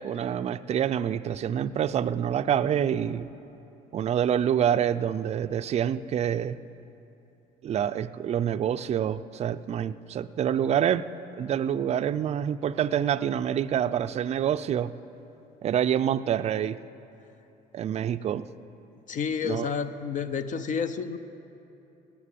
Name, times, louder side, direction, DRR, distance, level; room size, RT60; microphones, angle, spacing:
voice 1, 0.0-3.3 3.9-6.6 7.6-11.0 11.4-14.9 15.6-16.8 17.7-18.5 19.4-19.7, right 9 dB, 40° right, 12 dB, 0.4 m, -27 dB
voice 2, 19.1-21.2, left 6 dB, 50° left, 11 dB, 0.6 m, -30 dB
17.5 x 6.0 x 8.3 m, 3.0 s
cardioid pair, 110°, 17 cm